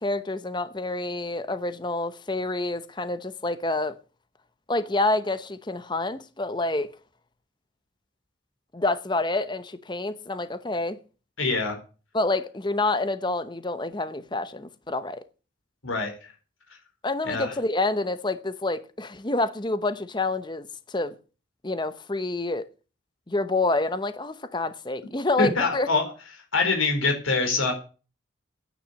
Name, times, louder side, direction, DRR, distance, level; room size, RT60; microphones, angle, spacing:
voice 1, 0.0-4.0 4.7-6.9 8.7-11.0 12.1-15.2 17.0-21.1 21.6-22.7 23.3-25.9, left 2 dB, 20° left, 0.9 m, -28 dB
voice 2, 11.4-11.8 15.8-16.1 17.2-17.5 25.4-26.1 26.5-27.7, left 3 dB, 90° left, 4.7 m, -24 dB
9.8 x 9.4 x 8.2 m
head